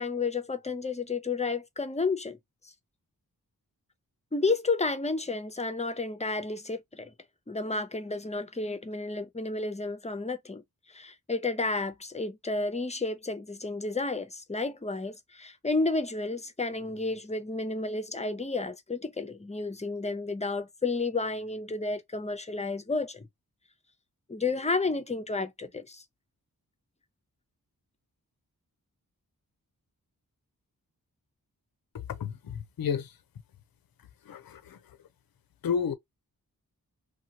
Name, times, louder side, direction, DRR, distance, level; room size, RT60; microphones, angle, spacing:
voice 1, 0.0-2.4 4.3-7.1 7.5-10.6 10.9-23.2 24.3-26.0, left 3 dB, 20° left, 0.6 m, -31 dB
voice 2, 31.9-33.2 34.2-35.0 35.6-35.9, left 7 dB, 70° left, 0.6 m, -32 dB
2.8 x 2.3 x 2.8 m
cardioid pair, 60°, 37 cm